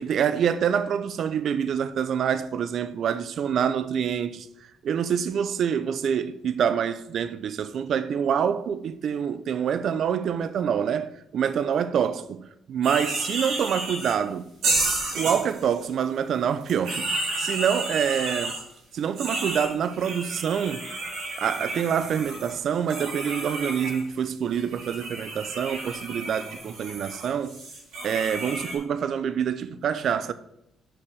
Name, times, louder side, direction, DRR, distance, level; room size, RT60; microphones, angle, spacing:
voice 1, 0.0-4.5 4.8-14.5 15.1-18.6 18.9-20.9 21.4-27.6 28.0-30.3, right 8 dB, 65° right, 0.5 m, -26 dB
sound 1, 12.8-14.1 14.6-15.8 16.6-18.6 19.2-24.0 24.5-28.8, right 2 dB, 85° right, 3.0 m, -31 dB
5.9 x 5.2 x 6.1 m
cardioid pair, 90°, 0 cm